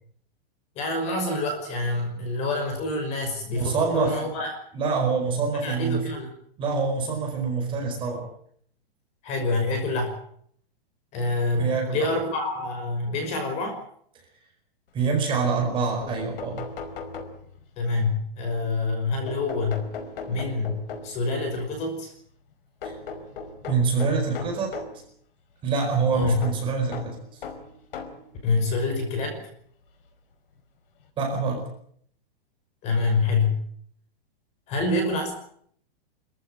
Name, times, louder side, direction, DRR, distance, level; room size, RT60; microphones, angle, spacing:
voice 1, 0.8-4.5 5.6-6.3 9.2-10.1 11.1-13.8 17.8-19.8 20.3-22.1 26.1-26.4 28.4-29.4 32.8-33.6 34.7-35.3, left 3 dB, 20° left, 5 dB, 5.6 m, -26 dB
voice 2, 3.5-4.2 4.7-6.0 6.6-8.2 11.5-12.0 14.9-16.6 22.8-22.9 23.7-24.8 25.6-27.2 31.2-31.7, right 5 dB, 15° right, 1 dB, 4.8 m, -25 dB
sound 1, 15.7-15.8 16.0-17.8 19.3-21.3 22.8-25.0 26.4-28.3 29.2-29.3 30.6-30.7 31.0-31.1, left 4 dB, 65° left, 4.9 m, -38 dB
25.5 x 15.0 x 9.0 m, 0.65 s
supercardioid pair, 170°, 30 cm